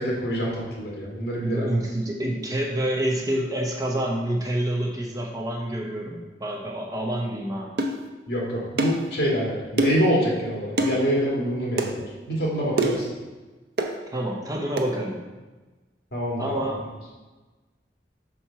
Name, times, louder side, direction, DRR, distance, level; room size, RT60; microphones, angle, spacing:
voice 1, 0.0-1.8 8.3-12.0 12.3-13.1 16.1-16.6, equal, 65° left, -4 dB, 1.8 m, -26 dB
voice 2, 1.4-7.7 14.1-15.2 16.4-16.8, right 1 dB, 20° right, -1 dB, 0.8 m, -27 dB
sound 1, 7.8-8.0 8.8-9.0 9.8-10.1 10.8-11.0 11.8-11.9 12.8-13.1 13.8-14.0 14.8-14.9, right 1 dB, 60° right, 0.6 m, -24 dB
4.6 x 4.4 x 5.7 m, 1.2 s
head